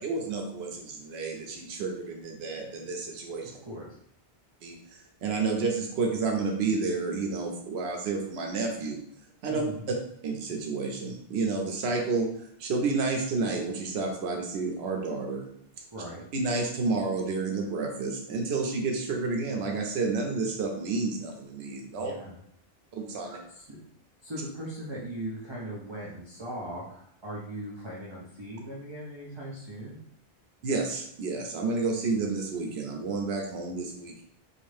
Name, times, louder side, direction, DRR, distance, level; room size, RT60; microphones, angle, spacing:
voice 1, 0.0-3.6 4.6-9.0 9.4-9.6 10.2-12.3 12.6-15.4 16.3-22.1 23.0-23.4 30.6-34.2, right 4 dB, 85° right, 2 dB, 0.8 m, -30 dB
voice 2, 3.4-3.9 9.5-9.9 15.9-16.2 22.0-22.4 23.2-23.8 24.2-30.0, right 1 dB, 35° right, -6 dB, 0.5 m, -39 dB
2.6 x 2.4 x 3.2 m, 0.71 s
omnidirectional pair, 1.0 m